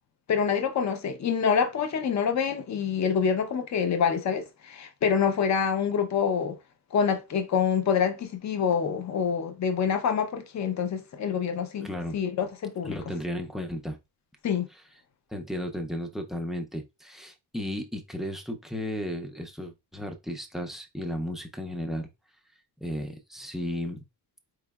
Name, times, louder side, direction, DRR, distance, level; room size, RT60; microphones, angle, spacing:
voice 1, 0.3-6.6 6.9-13.0 14.4-14.7, left 7 dB, 40° left, 0.6 m, -26 dB
voice 2, 11.8-12.2 12.8-14.0 15.3-22.1 22.8-24.0, left 1 dB, ahead, 0.4 m, -34 dB
4.5 x 3.2 x 2.3 m
wide cardioid pair, 155°, 42 cm